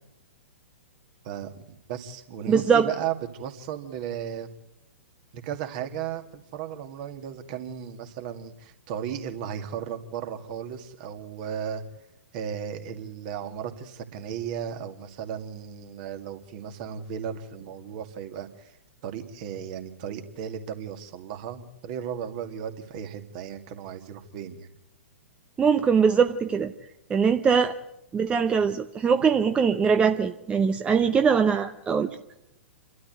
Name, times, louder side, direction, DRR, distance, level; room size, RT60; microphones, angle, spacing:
voice 1, 1.2-4.5 5.3-11.8 12.3-18.7 19.0-24.7, right 8 dB, 40° right, 7 dB, 2.2 m, -35 dB
voice 2, 2.5-2.9 25.6-26.7 27.1-27.8 28.1-32.1, right 6 dB, 15° right, 8 dB, 0.8 m, -22 dB
28.5 x 13.0 x 9.2 m, 0.83 s
figure-of-eight pair, 110°, 7 cm